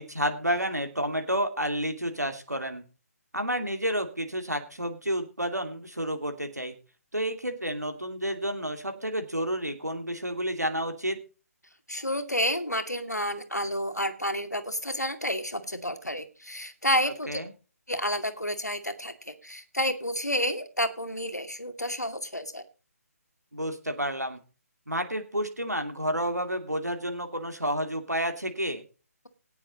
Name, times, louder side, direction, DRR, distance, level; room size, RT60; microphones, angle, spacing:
voice 1, 0.0-2.8 3.3-6.8 7.1-11.2 17.3-17.5 23.5-24.4 24.9-28.8, equal, 85° right, 6 dB, 2.6 m, -30 dB
voice 2, 11.9-17.4 17.9-22.6, equal, 90° left, 9 dB, 2.3 m, -30 dB
18.0 x 7.3 x 4.1 m, 0.34 s
figure-of-eight pair, 145°, 9 cm